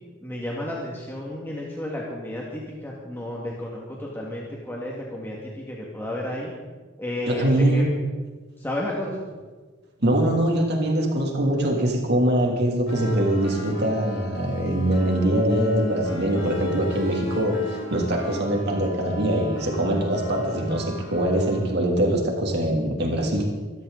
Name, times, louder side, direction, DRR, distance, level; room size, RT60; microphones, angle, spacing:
voice 1, 0.2-6.5 7.0-7.8 8.6-9.2, left 1 dB, 10° left, -3 dB, 2.2 m, -32 dB
voice 2, 7.3-7.9 10.0-23.5, right 1 dB, 55° right, 0 dB, 3.1 m, -23 dB
sound 1, 12.9-21.7, left 1 dB, 65° left, 3.4 m, -38 dB
25.0 x 13.0 x 4.1 m, 1.4 s
head